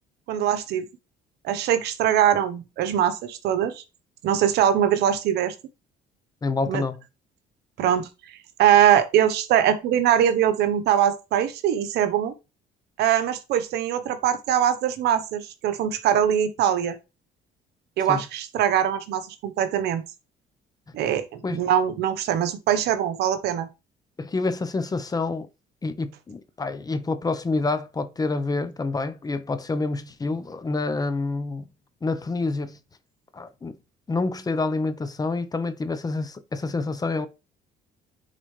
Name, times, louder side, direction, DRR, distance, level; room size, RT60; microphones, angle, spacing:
voice 1, 0.3-0.9 1.4-3.8 4.2-5.5 6.7-6.8 7.8-8.1 8.6-12.3 13.0-17.0 18.0-20.0 20.9-23.7, right 10 dB, 75° right, 1.0 m, -22 dB
voice 2, 6.4-7.0 18.1-18.2 21.4-21.6 24.2-25.5 25.8-31.6 32.0-32.8 33.3-33.7 34.1-37.3, left 3 dB, 20° left, 0.8 m, -27 dB
10.0 x 4.0 x 3.2 m
cardioid pair, 110°, 17 cm